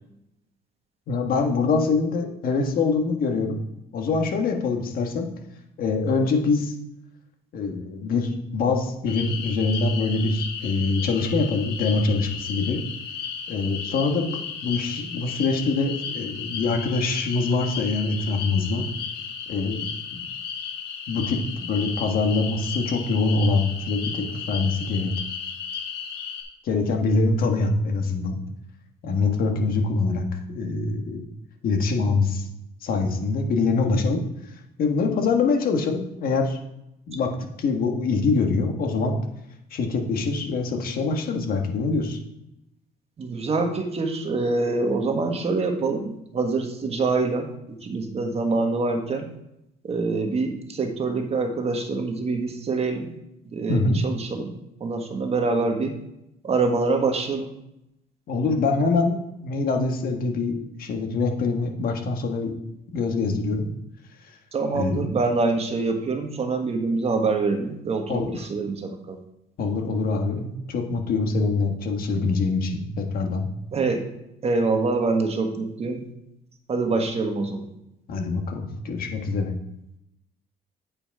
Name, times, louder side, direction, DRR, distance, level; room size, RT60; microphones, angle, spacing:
voice 1, 1.1-3.6 3.9-5.3 5.8-6.7 7.5-12.8 13.5-14.3 14.6-18.9 19.5-20.2 21.1-25.1 26.6-28.4 29.0-31.2 31.6-32.4 32.8-34.2 34.8-36.6 37.1-37.3 37.6-39.2 39.7-42.2 53.7-54.0 58.3-62.5 62.9-63.7 64.7-65.1 68.1-68.3 69.6-73.5 78.1-79.5, left 3 dB, 60° left, 4 dB, 1.5 m, -24 dB
sound 1, 9.1-26.4, left 7 dB, 75° left, 1.7 m, -34 dB
voice 2, 43.2-47.5 47.8-49.2 49.8-53.1 53.5-54.5 54.8-55.9 56.4-57.5 64.5-69.2 73.7-74.1 74.4-76.0 76.7-77.7, right 3 dB, 35° right, 4 dB, 1.5 m, -25 dB
8.5 x 5.0 x 4.8 m, 0.83 s
cardioid pair, 110°, 17 cm